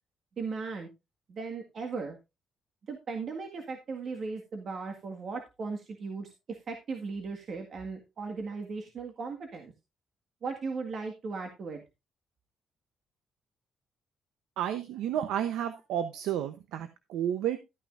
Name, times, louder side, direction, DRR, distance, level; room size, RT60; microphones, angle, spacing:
voice 1, 0.4-0.9 1.3-2.2 2.9-9.7 10.4-11.8, right 4 dB, 55° right, 3 dB, 1.8 m, -37 dB
voice 2, 14.6-17.6, right 10 dB, 90° right, 10 dB, 0.8 m, -31 dB
13.0 x 9.4 x 2.5 m, 0.24 s
cardioid pair, 90°, 0 cm